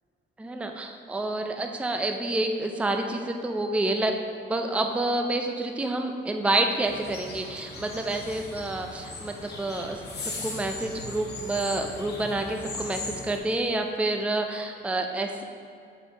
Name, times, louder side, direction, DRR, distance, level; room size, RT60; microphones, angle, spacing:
voice 1, 0.4-4.2 4.5-15.4, right 2 dB, 5° right, 4 dB, 0.4 m, -28 dB
sound 1, 6.8-13.4, left 2 dB, 55° left, 1.3 m, -38 dB
6.4 x 5.0 x 3.7 m, 2.4 s
cardioid pair, 90°, 20 cm